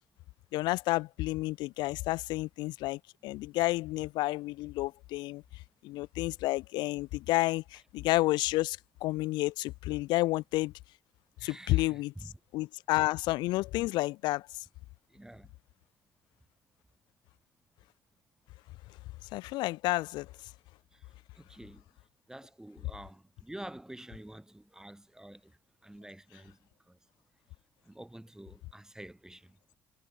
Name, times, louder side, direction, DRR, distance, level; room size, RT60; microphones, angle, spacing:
voice 1, 0.5-5.4 5.8-10.7 11.4-12.1 12.5-14.5 19.3-20.3, left 19 dB, 70° left, 1.2 m, -30 dB
voice 2, 11.4-12.3 15.1-15.5 20.9-21.0 21.4-21.8 22.3-25.5 25.8-26.6 26.9-27.0 27.8-29.6, right 1 dB, 5° right, 2.2 m, -48 dB
hypercardioid pair, 50°, 8 cm